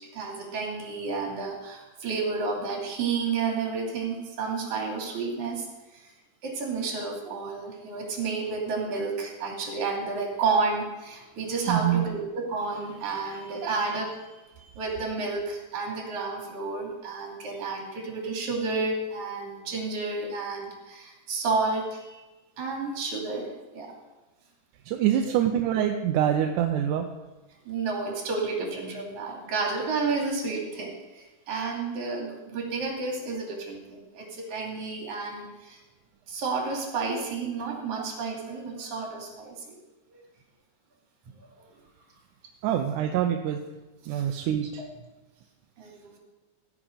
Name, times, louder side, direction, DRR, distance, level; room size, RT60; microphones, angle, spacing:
voice 1, 0.1-6.1 6.4-22.2 22.6-23.9 27.7-35.8 36.3-39.8 41.5-41.6 44.1-44.3 45.8-46.2, right 4 dB, 65° right, -1 dB, 3.9 m, -31 dB
voice 2, 11.7-12.1 24.9-27.1 42.6-43.6 44.1-44.8, right 10 dB, 80° right, 4 dB, 2.1 m, -25 dB
16.0 x 7.3 x 5.2 m, 1.1 s
omnidirectional pair, 3.6 m